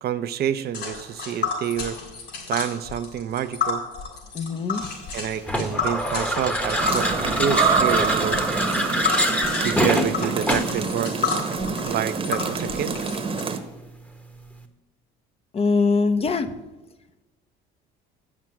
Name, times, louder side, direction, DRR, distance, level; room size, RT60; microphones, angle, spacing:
voice 1, 0.0-2.0 2.5-3.8 5.1-7.1 7.4-8.4 9.6-11.4 11.8-13.0, right 9 dB, 50° right, 12 dB, 0.7 m, -28 dB
Tick, 0.7-13.4, left 5 dB, 60° left, 3.7 m, -31 dB
voice 2, 4.3-4.9 15.5-16.5, left 4 dB, 30° left, 10 dB, 0.7 m, -22 dB
sound 1, 5.4-10.8, equal, 5° left, 1.0 m, -25 dB
sound 2, 6.8-13.6, right 5 dB, 25° right, 1.1 m, -26 dB
8.2 x 6.1 x 7.6 m, 1.0 s
cardioid pair, 105°, 20 cm